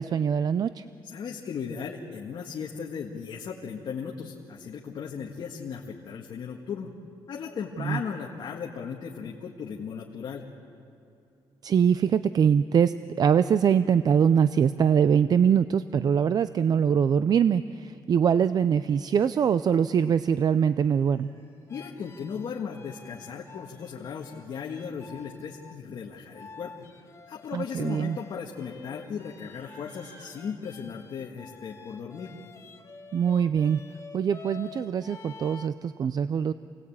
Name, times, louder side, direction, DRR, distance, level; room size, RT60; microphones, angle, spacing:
voice 1, 0.0-0.9 7.8-8.0 11.6-21.3 27.5-28.2 33.1-33.8 34.1-36.5, right 7 dB, 45° right, 13 dB, 0.5 m, -23 dB
voice 2, 1.0-6.9 7.3-10.5 21.7-26.7 27.3-32.3, left 6 dB, 55° left, -1 dB, 1.8 m, -36 dB
Livestock farm animals working animals, 20.8-21.8 22.7-23.9 25.0-25.1 25.3-25.7 26.0-26.3 26.9-30.5, right 1 dB, 75° right, 7.9 m, -60 dB
sound 1, 21.7-25.8 26.3-35.7, left 5 dB, 30° left, 1.4 m, -49 dB
28.0 x 19.0 x 8.8 m, 2.6 s
cardioid pair, 125°, 9 cm